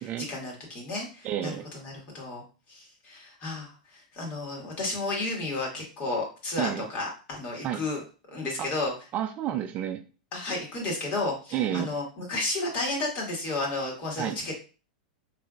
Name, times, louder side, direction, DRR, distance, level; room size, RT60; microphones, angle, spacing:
voice 1, 0.2-2.4 2.7-8.9 10.3-14.5, left 2 dB, 40° left, -1 dB, 1.9 m, -32 dB
voice 2, 1.2-1.6 6.6-6.9 7.6-7.8 8.6-8.7 9.1-10.0 11.5-11.9 14.2-14.4, right 11 dB, 35° right, 8 dB, 0.4 m, -30 dB
4.3 x 3.3 x 2.5 m, 0.35 s
hypercardioid pair, 120°, 4 cm